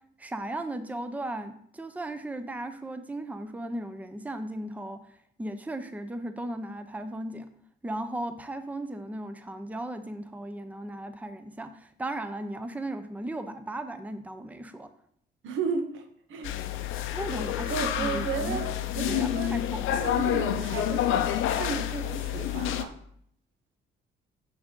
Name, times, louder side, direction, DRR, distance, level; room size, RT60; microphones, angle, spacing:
voice 1, 0.2-7.5 7.8-14.9 17.1-18.6 19.1-20.1, right 1 dB, 5° right, 9 dB, 0.6 m, -36 dB
voice 2, 15.4-16.6 17.7-19.6 20.0-22.9, right 5 dB, 85° right, 7 dB, 1.0 m, -34 dB
sound 1, 16.4-22.8, left 11 dB, 85° left, 0.6 m, -29 dB
6.2 x 6.1 x 3.7 m, 0.66 s
cardioid pair, 90°, 20 cm